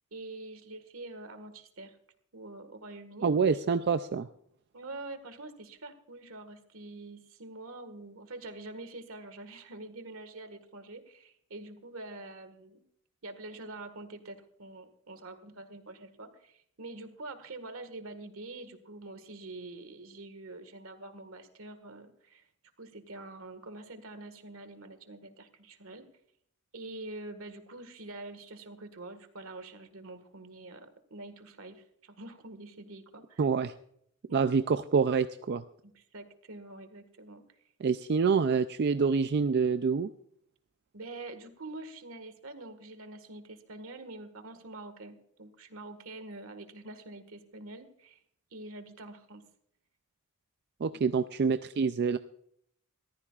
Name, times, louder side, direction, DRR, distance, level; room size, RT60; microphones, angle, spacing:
voice 1, 0.1-2.0 2.3-3.3 4.7-12.8 13.2-22.4 22.8-26.1 26.7-33.4 34.3-34.5 35.8-37.4 40.9-48.2 48.5-49.4, right 2 dB, 85° right, 10 dB, 1.7 m, -45 dB
voice 2, 3.2-4.3 33.4-33.7 34.3-35.6 37.8-40.1 50.8-52.2, right 5 dB, 55° right, 11 dB, 0.4 m, -26 dB
21.0 x 14.5 x 2.4 m, 0.69 s
head